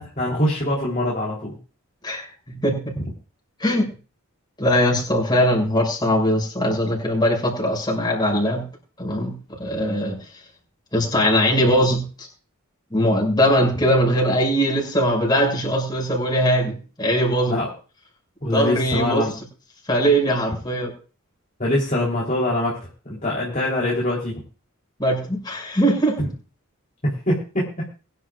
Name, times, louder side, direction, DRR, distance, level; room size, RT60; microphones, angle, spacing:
voice 1, 0.0-1.6 17.5-17.7 18.4-19.3 21.6-24.4 26.2-26.3 27.0-27.7, left 1 dB, 35° left, -5 dB, 3.7 m, -23 dB
voice 2, 2.0-2.9 3.6-3.9 4.6-8.7 9.0-10.2 10.9-12.3 12.9-17.6 18.5-19.2 19.9-20.9 25.0-26.2, equal, 20° left, -1 dB, 6.4 m, -21 dB
23.0 x 11.5 x 2.5 m, 0.36 s
head